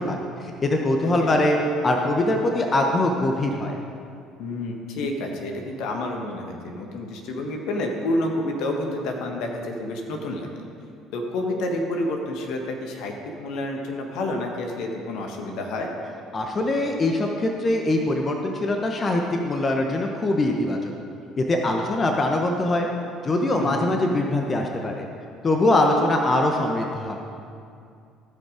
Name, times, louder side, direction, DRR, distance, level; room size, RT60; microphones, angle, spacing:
voice 1, 0.0-1.6 1.8-3.8 16.3-20.9 21.4-22.9 23.2-25.1 25.4-27.2, left 2 dB, 35° left, 2 dB, 1.1 m, -23 dB
voice 2, 4.4-10.5 11.1-15.9 23.6-24.0, left 1 dB, 65° left, 2 dB, 1.4 m, -29 dB
16.0 x 5.3 x 5.1 m, 2.4 s
hypercardioid pair, 60°, 0 cm